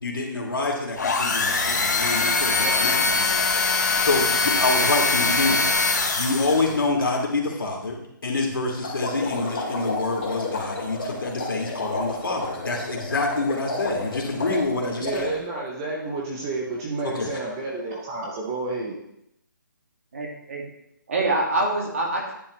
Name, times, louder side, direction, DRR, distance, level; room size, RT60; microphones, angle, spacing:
voice 1, 0.0-5.7 6.1-15.3 17.1-17.3, left 3 dB, 90° left, 0 dB, 2.6 m, -27 dB
sound 1, 1.0-6.8, left 3 dB, 55° left, 1.5 m, -22 dB
sound 2, 8.8-15.3, left 2 dB, 35° left, 2.2 m, -31 dB
voice 2, 15.0-19.0, right 2 dB, 10° right, -2 dB, 0.6 m, -30 dB
voice 3, 20.1-20.6 21.1-22.3, right 2 dB, 40° right, 0 dB, 2.1 m, -25 dB
10.0 x 7.5 x 3.2 m, 0.79 s
hypercardioid pair, 175°, 11 cm